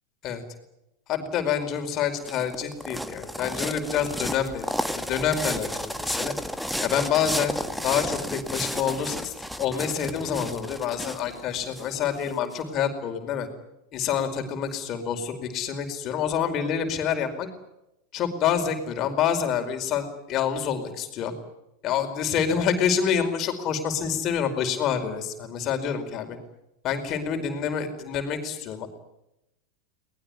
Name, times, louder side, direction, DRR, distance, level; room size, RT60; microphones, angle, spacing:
voice 1, 1.1-4.7 4.9-6.4 6.8-13.5 13.9-17.5 18.1-21.3 21.8-26.4 26.8-28.9, left 8 dB, 40° left, 6 dB, 4.9 m, -27 dB
sound 1, 1.8-12.6, equal, ahead, 1.6 m, -32 dB
22.5 x 20.0 x 9.9 m, 0.87 s
figure-of-eight pair, 85°, 0 cm